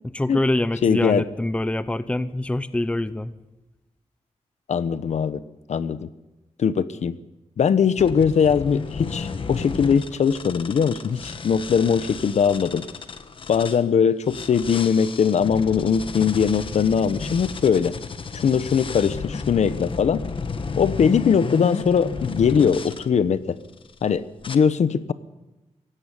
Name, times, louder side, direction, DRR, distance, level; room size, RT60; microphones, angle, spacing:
voice 1, 0.1-3.3, left 1 dB, 10° left, 15 dB, 0.7 m, -25 dB
voice 2, 0.8-1.2 4.7-5.4 5.7-6.1 6.6-7.2 7.6-12.9 13.5-17.9 18.3-20.2 20.8-23.6 24.0-25.1, left 7 dB, 75° left, 15 dB, 1.0 m, -21 dB
sound 1, 8.0-13.8 14.3-23.0 23.7-24.0 24.4-24.6, left 4 dB, 50° left, 1.3 m, -33 dB
17.0 x 16.5 x 9.9 m, 1.0 s
wide cardioid pair, 165°, 12 cm